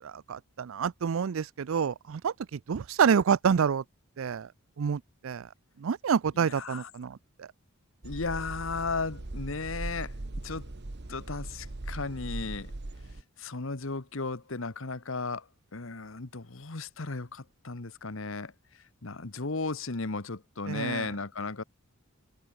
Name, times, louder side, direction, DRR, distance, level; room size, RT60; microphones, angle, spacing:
voice 1, 0.0-3.8 4.2-4.5 4.8-5.5 5.8-7.5 20.7-21.1, right 7 dB, 70° right, 0.4 m, -28 dB
voice 2, 6.4-6.9 8.0-10.1 10.4-10.7 11.1-12.7 13.4-15.5 15.7-18.5 19.0-21.6, left 3 dB, 65° left, 1.3 m, -35 dB
sound 1, 8.0-13.2, right 2 dB, 50° right, 1.1 m, -39 dB
head